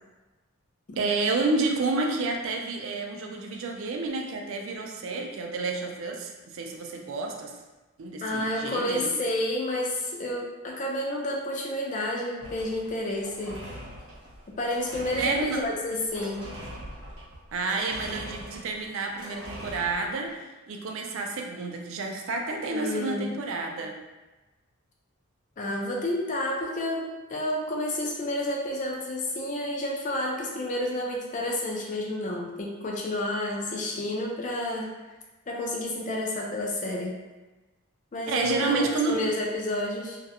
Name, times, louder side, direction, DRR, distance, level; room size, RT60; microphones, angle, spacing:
voice 1, 1.0-7.5 8.0-9.1 15.2-15.7 17.5-20.3 20.7-24.0 38.3-39.3, right 3 dB, 60° right, 2 dB, 0.3 m, -30 dB
voice 2, 8.2-13.6 14.6-16.4 22.7-23.3 25.6-34.9 35.5-37.1 38.1-40.2, left 1 dB, 35° left, -1 dB, 0.4 m, -30 dB
sound 1, 12.4-20.3, equal, 75° right, 0.9 m, -43 dB
2.3 x 2.0 x 2.7 m, 1.2 s
head